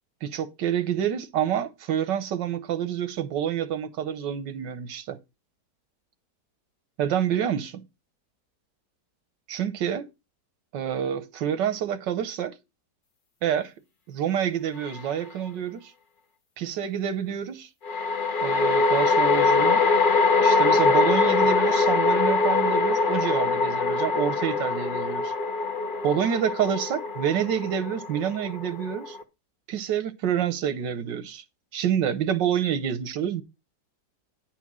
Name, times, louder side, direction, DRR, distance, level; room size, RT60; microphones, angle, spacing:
voice 1, 0.2-5.2 7.0-7.8 9.5-10.1 10.7-12.5 13.4-13.7 14.1-15.9 16.6-17.7 18.4-19.8 20.4-25.3 26.0-29.2 29.7-31.4 31.7-33.4, right 9 dB, 90° right, 1.6 m, -28 dB
sound 1, 14.9-15.0 17.8-29.2, left 4 dB, 35° left, 0.9 m, -23 dB
9.8 x 4.6 x 6.2 m
omnidirectional pair, 1.9 m